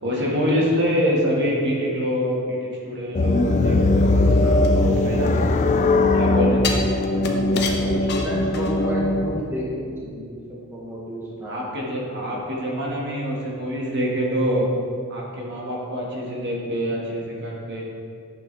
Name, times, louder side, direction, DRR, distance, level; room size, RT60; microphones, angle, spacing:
voice 1, 0.0-5.7 6.1-6.6 11.4-14.7 15.1-17.8, equal, 55° right, -3 dB, 1.5 m, -25 dB
sound 1, 3.1-9.4, left 2 dB, 35° left, 0.4 m, -20 dB
sound 2, 4.6-5.8 6.6-9.0 9.4-9.5, left 5 dB, 50° left, 0.8 m, -31 dB
voice 2, 7.1-11.7, right 1 dB, 10° right, -4 dB, 0.8 m, -32 dB
8.6 x 6.6 x 3.2 m, 2.4 s
head